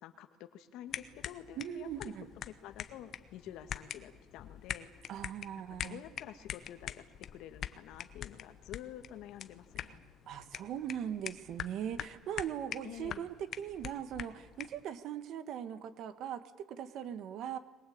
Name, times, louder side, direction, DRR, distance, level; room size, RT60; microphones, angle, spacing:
voice 1, 0.0-2.1 2.5-4.9 5.7-7.0 7.3-10.0 12.8-13.3, left 11 dB, 60° left, 9 dB, 1.9 m, -49 dB
sound 1, 0.9-14.8, left 10 dB, 40° left, 1.0 m, -45 dB
voice 2, 1.6-2.3 5.1-6.0 10.3-17.6, right 9 dB, 50° right, 11 dB, 1.7 m, -40 dB
22.5 x 21.5 x 8.8 m, 1.1 s
cardioid pair, 180°, 0 cm